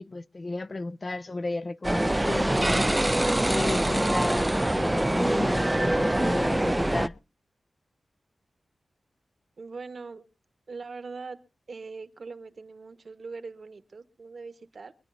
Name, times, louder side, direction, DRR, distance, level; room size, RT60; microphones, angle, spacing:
voice 1, 0.0-2.9 3.4-7.1, left 2 dB, 40° left, 0.5 m, -33 dB
sound 1, 1.8-7.1, right 1 dB, 15° right, 0.6 m, -24 dB
voice 2, 9.6-10.2 10.7-14.9, right 4 dB, 60° right, 1.5 m, -41 dB
24.5 x 10.5 x 2.8 m
wide cardioid pair, 80°, 0 cm